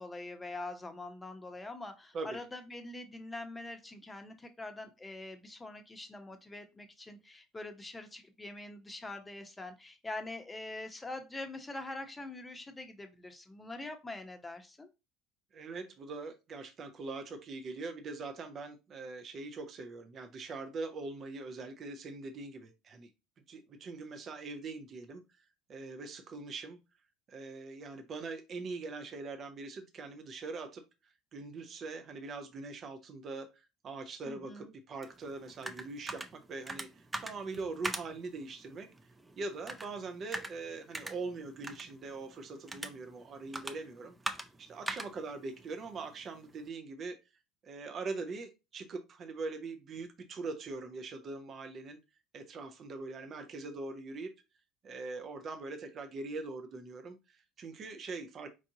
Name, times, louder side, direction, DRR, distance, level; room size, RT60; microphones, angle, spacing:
voice 1, 0.0-14.9 34.2-34.7, left 2 dB, 15° left, 0.9 m, -44 dB
voice 2, 15.5-23.1 23.5-25.2 25.7-26.8 27.3-30.8 31.3-38.9 39.4-44.1 44.6-47.2 47.6-52.0 52.3-54.3 54.8-58.5, right 3 dB, 45° right, 0.8 m, -42 dB
sound 1, 35.0-46.7, right 2 dB, 15° right, 0.5 m, -44 dB
4.6 x 2.5 x 2.7 m
hypercardioid pair, 70°, 0 cm